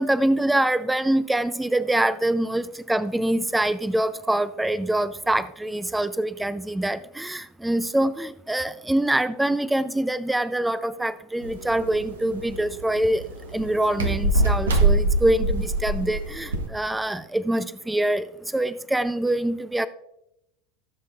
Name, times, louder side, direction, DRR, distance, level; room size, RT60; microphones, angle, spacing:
voice 1, 0.0-13.2 13.5-18.2 18.5-19.9, right 1 dB, 5° right, 15 dB, 0.4 m, -24 dB
sound 1, 11.4-16.7, right 2 dB, 75° right, 1.2 m, -24 dB
16.0 x 7.4 x 2.4 m, 0.83 s
figure-of-eight pair, 75°, 0 cm